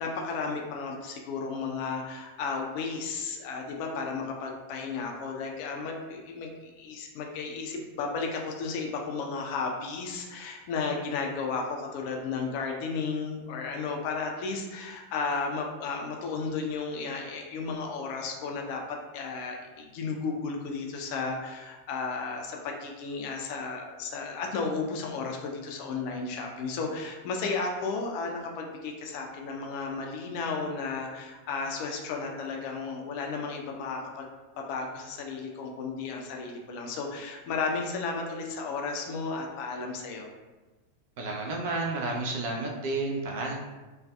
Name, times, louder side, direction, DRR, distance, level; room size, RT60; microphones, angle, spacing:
voice 1, 0.0-34.3 34.6-40.3, left 4 dB, 45° left, 1 dB, 0.4 m, -34 dB
voice 2, 41.2-43.6, right 2 dB, 50° right, -1 dB, 0.5 m, -31 dB
2.5 x 2.2 x 2.3 m, 1.2 s
figure-of-eight pair, 90°, 0 cm